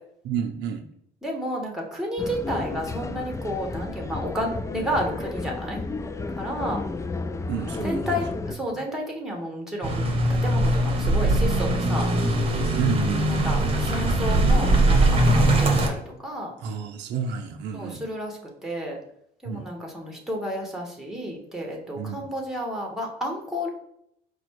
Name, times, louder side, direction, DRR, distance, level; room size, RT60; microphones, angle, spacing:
voice 1, 0.2-0.9 7.5-8.2 8.7-8.8 12.8-13.3 16.6-18.0 19.4-19.7 22.0-22.2, right 6 dB, 85° right, 5 dB, 0.6 m, -30 dB
voice 2, 1.2-5.8 6.3-6.8 7.8-12.1 13.3-16.5 17.7-19.0 19.4-23.7, equal, 5° right, 1 dB, 1.3 m, -31 dB
sound 1, 2.2-8.6, left 3 dB, 15° left, 0.3 m, -32 dB
sound 2, 9.8-15.9, right 1 dB, 35° right, 1.0 m, -21 dB
5.0 x 2.3 x 4.6 m, 0.74 s
cardioid pair, 95°, 17 cm